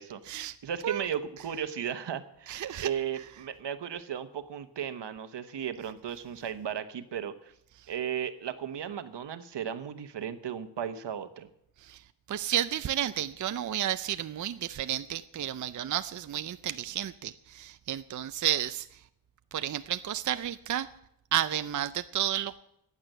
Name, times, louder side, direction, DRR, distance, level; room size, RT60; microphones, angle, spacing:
voice 1, 0.0-7.5 7.9-11.5, right 9 dB, 75° right, 10 dB, 1.2 m, -35 dB
voice 2, 2.5-2.9 11.8-12.0 12.3-18.9 19.5-20.9 21.3-22.6, right 11 dB, 45° right, 12 dB, 0.5 m, -31 dB
15.0 x 9.8 x 6.7 m, 0.76 s
wide cardioid pair, 130°, 42 cm